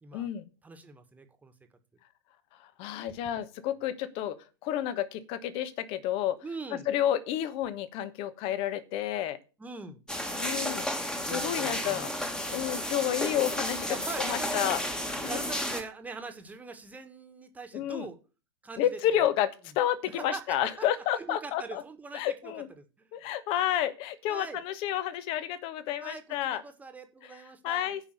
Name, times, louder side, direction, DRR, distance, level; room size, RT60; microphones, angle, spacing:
voice 1, 0.1-0.5 2.6-6.4 6.9-9.4 10.4-10.9 11.2-12.1 12.5-14.8 15.2-15.4 17.7-18.1 18.8-21.8 22.1-22.7 23.1-26.6 27.6-28.0, left 11 dB, 40° left, 14 dB, 1.2 m, -30 dB
voice 2, 0.6-1.5 3.2-3.7 6.4-6.9 9.6-10.0 11.2-12.2 13.9-14.9 15.2-18.2 18.6-19.3 19.7-19.8 20.1-20.8 21.2-23.1 24.3-24.6 26.0-28.0, right 3 dB, 10° right, 8 dB, 1.6 m, -43 dB
sound 1, 10.1-15.8, equal, 5° left, 1.5 m, -32 dB
8.8 x 5.5 x 7.7 m, 0.33 s
figure-of-eight pair, 95°, 14 cm